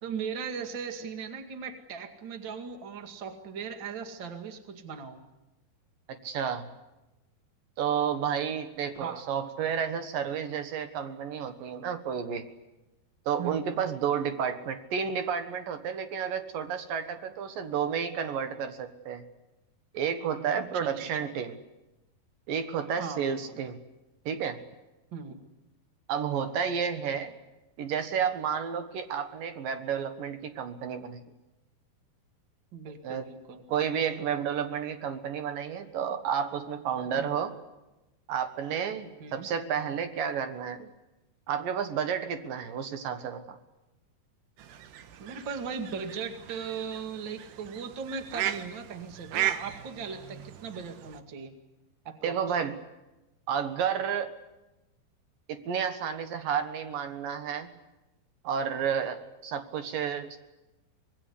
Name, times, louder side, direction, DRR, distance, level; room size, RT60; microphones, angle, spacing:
voice 1, 0.0-5.2 9.0-9.2 13.4-13.9 20.6-21.3 22.9-23.6 25.1-25.4 32.7-33.6 37.2-37.4 39.2-39.5 45.2-51.5 52.0-52.6, right 6 dB, 35° right, 6 dB, 2.2 m, -38 dB
voice 2, 6.1-6.7 7.8-12.4 13.3-19.2 19.9-21.6 22.5-23.8 24.3-24.6 26.1-27.3 27.8-31.2 33.0-33.2 33.7-37.6 38.3-40.9 41.5-43.6 52.2-52.8 53.5-54.3 55.5-57.7 58.4-60.4, right 7 dB, 65° right, 9 dB, 2.8 m, -31 dB
sound 1, 44.6-51.2, right 12 dB, 85° right, 3.3 m, -37 dB
25.0 x 20.5 x 9.9 m, 1.0 s
omnidirectional pair, 4.6 m